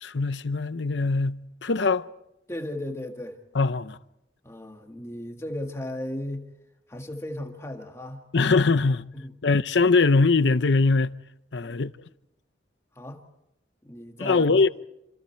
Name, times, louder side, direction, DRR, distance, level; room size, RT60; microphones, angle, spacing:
voice 1, 0.0-2.1 3.5-4.0 8.3-9.0 9.4-11.1 11.5-11.9 14.2-14.7, left 3 dB, 85° left, 0.8 m, -22 dB
voice 2, 2.5-3.4 4.4-6.5 6.9-8.2 9.1-9.3 11.6-11.9 13.0-13.2 13.8-14.7, left 1 dB, 15° left, 1.7 m, -36 dB
28.0 x 27.0 x 4.6 m
head